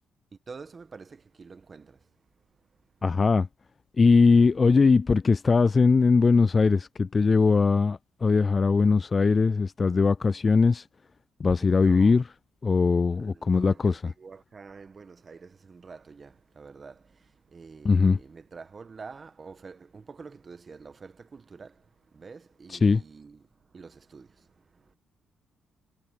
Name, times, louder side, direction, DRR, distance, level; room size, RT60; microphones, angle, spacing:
voice 1, 0.3-2.2 2.6-2.8 11.6-12.2 13.1-25.0, right 5 dB, 35° right, 1.6 m, -47 dB
voice 2, 3.0-3.5 4.0-10.9 11.4-12.2 12.6-14.0 17.8-18.2 22.7-23.0, left 4 dB, 35° left, 0.3 m, -21 dB
cardioid pair, 90°, 0 cm